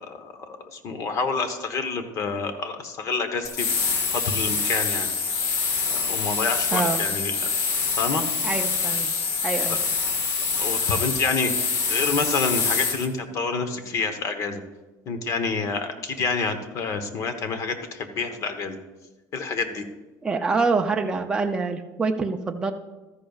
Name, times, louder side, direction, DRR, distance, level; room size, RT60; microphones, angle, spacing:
voice 1, 0.0-3.7 4.1-5.1 5.9-7.5 8.0-8.2 9.7-9.8 10.6-14.6 15.1-18.8 19.3-19.8, left 4 dB, 40° left, 8 dB, 1.0 m, -28 dB
sound 1, 3.4-13.1, left 5 dB, 90° left, 1.6 m, -25 dB
voice 2, 6.7-7.0 8.4-9.1 9.4-9.8 20.2-22.7, right 4 dB, 10° right, 3 dB, 0.4 m, -25 dB
13.5 x 10.5 x 2.4 m, 1.1 s
cardioid pair, 165°, 8 cm